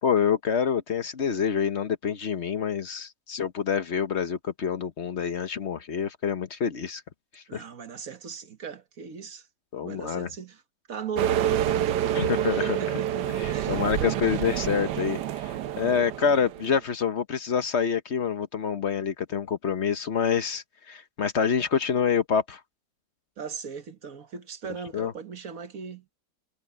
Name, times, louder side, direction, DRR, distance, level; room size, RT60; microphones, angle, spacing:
voice 1, 0.0-7.0 7.3-7.6 9.7-10.3 12.1-12.8 13.4-22.6 24.9-25.1, left 7 dB, 45° left, 1.0 m, -27 dB
voice 2, 7.5-9.5 9.8-10.6 10.9-12.3 12.5-14.6 23.4-26.1, right 6 dB, 50° right, 1.6 m, -38 dB
sound 1, 11.2-16.7, right 11 dB, 70° right, 1.3 m, -28 dB
omnidirectional pair, 2.0 m